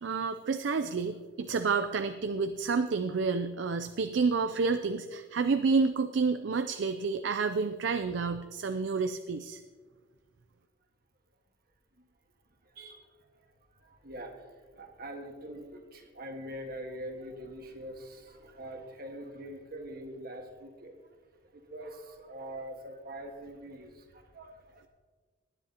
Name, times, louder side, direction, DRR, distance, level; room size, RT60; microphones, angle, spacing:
voice 1, 0.0-9.6, right 4 dB, 60° right, 10 dB, 0.4 m, -29 dB
voice 2, 12.6-21.1 21.5-24.9, right 1 dB, 45° right, 4 dB, 1.5 m, -44 dB
18.5 x 10.0 x 2.9 m, 1.5 s
head